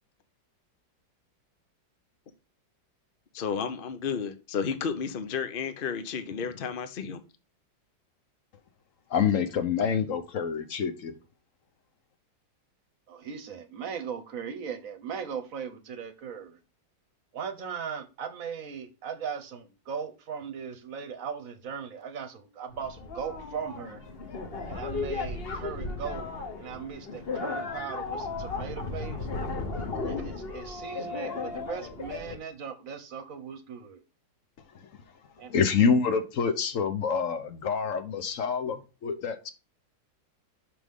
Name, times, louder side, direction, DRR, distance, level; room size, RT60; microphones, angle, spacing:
voice 1, 3.3-7.2, left 6 dB, 75° left, 0.5 m, -32 dB
voice 2, 9.1-11.1 35.5-39.5, left 6 dB, 55° left, 1.0 m, -27 dB
voice 3, 13.1-16.6 17.3-24.0 24.7-26.3 26.6-29.3 30.0-34.0 35.4-35.5, right 7 dB, 55° right, 1.2 m, -38 dB
sound 1, 22.7-32.4, left 3 dB, 35° left, 1.2 m, -35 dB
6.0 x 6.0 x 3.6 m
omnidirectional pair, 2.1 m